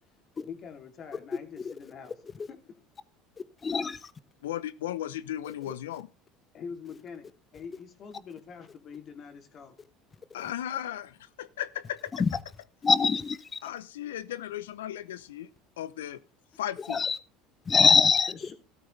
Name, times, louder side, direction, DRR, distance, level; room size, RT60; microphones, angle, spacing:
voice 1, 0.4-2.7 6.5-7.3 7.5-9.8 17.7-17.8 18.3-18.5, left 6 dB, 45° left, 2.9 m, -44 dB
voice 2, 3.6-4.0 12.2-12.3 12.8-13.6 16.9-17.2 17.7-18.3, left 5 dB, 30° left, 1.0 m, -23 dB
voice 3, 4.4-6.1 10.3-12.1 13.6-15.5 15.8-16.2 16.6-17.1, left 12 dB, 85° left, 0.7 m, -36 dB
14.0 x 12.5 x 3.3 m
hypercardioid pair, 80°, 0 cm